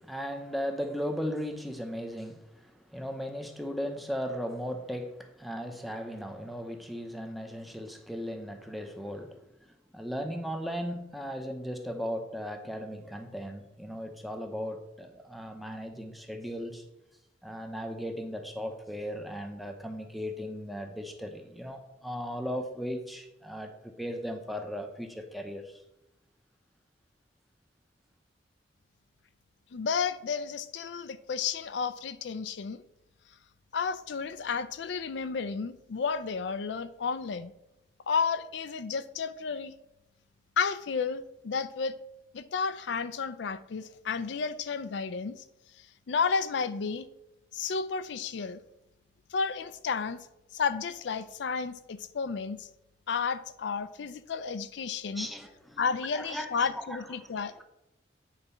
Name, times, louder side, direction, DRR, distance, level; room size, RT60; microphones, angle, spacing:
voice 1, 0.0-16.9 17.4-25.8 55.1-55.9 56.1-57.6, equal, ahead, 5 dB, 0.7 m, -37 dB
voice 2, 29.7-32.8 33.7-37.5 38.1-39.7 40.6-41.9 42.3-45.4 46.1-47.1 47.5-48.6 49.3-50.2 50.5-52.7 53.1-55.3 55.8-57.6, left 5 dB, 70° left, 13 dB, 0.4 m, -32 dB
9.1 x 4.1 x 5.5 m, 0.89 s
head